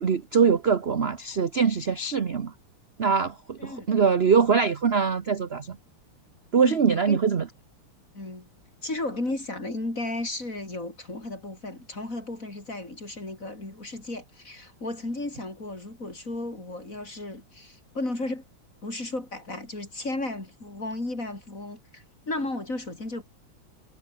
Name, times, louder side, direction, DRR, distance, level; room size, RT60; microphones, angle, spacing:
voice 1, 0.0-2.5 3.0-5.8 6.5-7.5, right 6 dB, 40° right, 0.9 m, -23 dB
voice 2, 3.6-3.9 6.6-7.2 8.1-8.5 8.8-18.5 18.8-23.2, left 2 dB, 35° left, 6.3 m, -34 dB
omnidirectional pair, 2.4 m